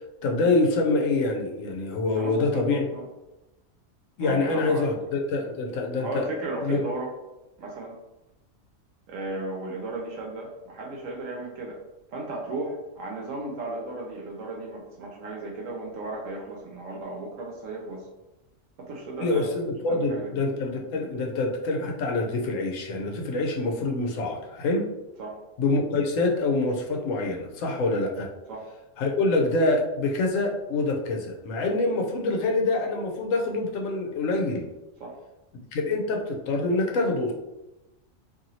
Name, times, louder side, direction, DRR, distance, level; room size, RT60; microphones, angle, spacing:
voice 1, 0.2-2.8 4.2-6.2 6.6-6.8 19.2-24.8 25.6-28.3 29.0-34.7 35.7-37.3, left 2 dB, 75° left, 1 dB, 1.0 m, -25 dB
voice 2, 2.1-3.1 4.2-4.9 5.4-5.5 6.0-7.1 7.6-8.0 9.1-11.8 12.1-18.1 18.9-19.5 19.9-20.3 25.2-25.3 28.5-28.6 35.0-35.1, right 2 dB, 80° right, -1 dB, 0.9 m, -35 dB
2.9 x 2.7 x 2.6 m, 0.97 s
omnidirectional pair, 1.4 m